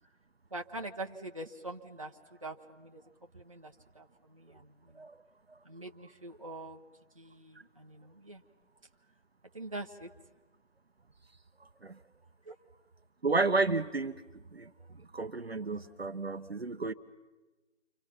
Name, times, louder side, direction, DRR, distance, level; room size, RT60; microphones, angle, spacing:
voice 1, 0.5-2.1 2.4-3.0 3.3-5.0 5.6-6.8 7.2-8.4 9.5-10.1 12.5-12.6, right 2 dB, 25° right, 1 dB, 0.9 m, -44 dB
voice 2, 13.2-14.2 14.5-14.7 15.1-16.9, right 3 dB, 55° right, 10 dB, 0.9 m, -31 dB
30.0 x 25.0 x 5.8 m, 1.2 s
figure-of-eight pair, 170°, 38 cm